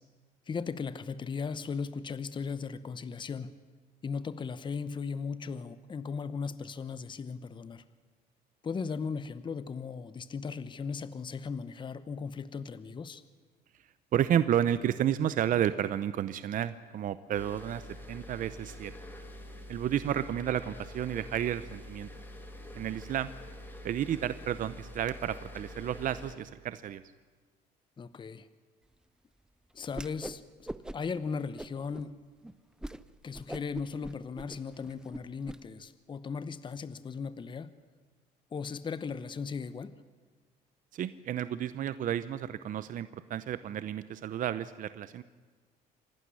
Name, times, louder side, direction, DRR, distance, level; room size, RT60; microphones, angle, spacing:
voice 1, 0.5-3.5 4.0-7.8 8.6-13.2 28.0-28.5 29.7-30.7 30.9-32.2 33.2-37.7 38.5-40.0, left 5 dB, 30° left, 14 dB, 0.8 m, -37 dB
voice 2, 14.1-18.9 19.7-22.1 22.7-23.3 23.8-27.0 40.9-45.2, right 10 dB, 50° right, 14 dB, 0.7 m, -31 dB
sound 1, 17.4-26.4, left 1 dB, 10° left, 2.7 m, -46 dB
Whoosh swoosh swish, 29.9-30.4 30.7-31.2 31.6-32.1 32.4-32.5 32.8-33.0 33.3-35.6, right 1 dB, 5° right, 0.6 m, -41 dB
26.5 x 12.0 x 10.0 m, 1.4 s
cardioid pair, 110°, 17 cm